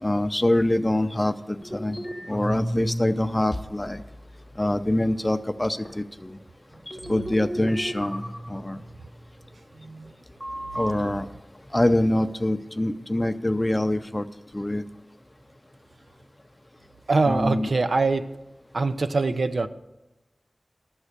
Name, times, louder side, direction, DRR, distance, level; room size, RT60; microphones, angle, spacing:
voice 1, 0.0-4.0 4.6-6.4 7.1-8.8 10.8-11.3 11.7-14.3 14.5-14.8 17.3-17.7, left 1 dB, 20° left, 11 dB, 0.6 m, -25 dB
sound 1, 1.6-3.4 3.7-4.6 5.1-5.2 5.8-6.0 6.7-9.3 10.4-10.9, equal, 10° right, 1.4 m, -34 dB
voice 2, 9.8-10.1 17.1-18.3 18.7-19.7, right 3 dB, 80° right, 10 dB, 0.5 m, -23 dB
12.5 x 7.2 x 6.6 m, 1.0 s
wide cardioid pair, 65°, 0 cm